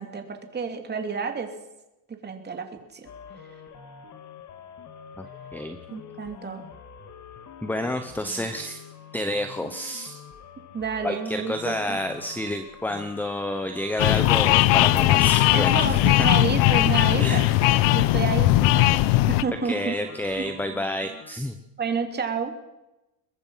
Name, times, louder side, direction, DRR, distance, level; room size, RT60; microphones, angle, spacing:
voice 1, 0.0-1.5 2.1-3.1 5.9-6.6 10.7-12.0 15.5-17.5 17.8-20.0 20.4-20.5 21.8-22.5, right 5 dB, 20° right, 5 dB, 3.0 m, -30 dB
sound 1, 3.0-21.4, left 7 dB, 35° left, 2.3 m, -45 dB
voice 2, 7.6-8.8 9.1-10.2 11.0-15.8 16.2-16.3 17.2-17.5 19.6-21.6, left 1 dB, 5° left, 8 dB, 1.0 m, -29 dB
sound 2, 14.0-19.4, left 16 dB, 65° left, 1.0 m, -19 dB
23.5 x 21.0 x 5.8 m, 0.97 s
cardioid pair, 155°, 46 cm